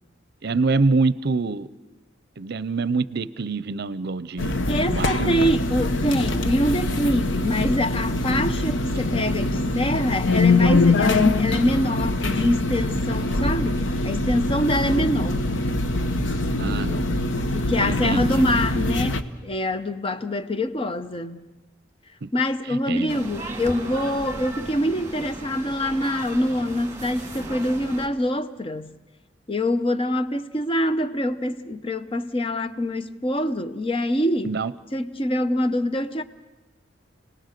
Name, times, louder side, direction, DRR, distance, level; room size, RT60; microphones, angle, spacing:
voice 1, 0.4-1.7 2.4-4.6 4.9-5.5 16.6-17.1 17.8-18.5 22.2-22.3 22.9-23.2 34.4-34.7, right 3 dB, 55° right, 0.7 m, -25 dB
sound 1, 4.4-19.2, left 2 dB, 65° left, 1.0 m, -23 dB
voice 2, 4.7-15.4 17.5-21.5 22.3-28.9 29.5-34.5 34.9-36.2, left 1 dB, 30° left, 0.8 m, -25 dB
sound 2, 23.1-28.1, right 2 dB, 15° right, 2.3 m, -36 dB
29.5 x 19.0 x 6.7 m
head